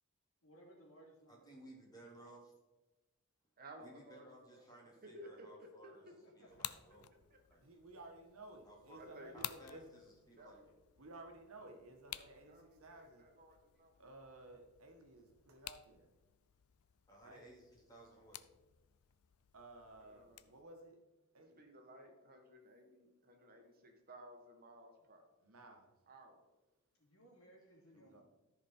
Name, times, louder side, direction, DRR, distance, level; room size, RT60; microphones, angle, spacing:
voice 1, 0.4-1.6 5.8-6.8 27.0-28.2, right 1 dB, 70° left, -2 dB, 3.0 m, -63 dB
voice 2, 1.3-2.5 3.8-7.1 7.5-7.6 8.7-10.7 17.1-18.4, right 1 dB, 20° left, -2 dB, 2.6 m, -59 dB
voice 3, 3.6-4.2 4.5-6.1 7.3-7.4 9.0-9.7 10.4-10.6 12.1-14.0 20.0-20.4 21.6-25.2 26.1-26.4, right 1 dB, 45° right, 3 dB, 1.5 m, -57 dB
sound 1, 6.5-20.6, left 14 dB, 85° left, 0.4 m, -54 dB
voice 4, 7.6-10.0 11.0-13.3 14.0-16.1 17.2-17.5 19.5-21.0 21.3-21.7 25.4-25.9 27.9-28.2, right 2 dB, 70° right, 4 dB, 1.5 m, -56 dB
13.5 x 5.2 x 4.4 m, 1.1 s
head